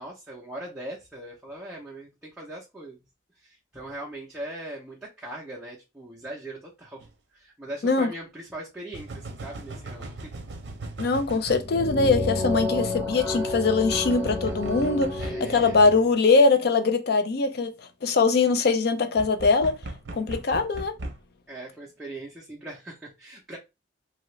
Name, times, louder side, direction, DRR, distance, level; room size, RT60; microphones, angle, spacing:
voice 1, 0.0-3.0 3.4-7.1 7.3-10.3 15.2-16.2 21.5-23.6, right 1 dB, 5° right, 0.6 m, -40 dB
sound 1, 7.0-7.1 8.9-11.7 13.9-15.4 19.2-21.2, right 2 dB, 70° right, 0.6 m, -38 dB
voice 2, 11.0-17.7 18.0-19.8 20.1-20.9, left 4 dB, 60° left, 0.5 m, -22 dB
sound 2, 11.4-16.0, left 2 dB, 15° left, 1.0 m, -30 dB
2.8 x 2.4 x 3.1 m
head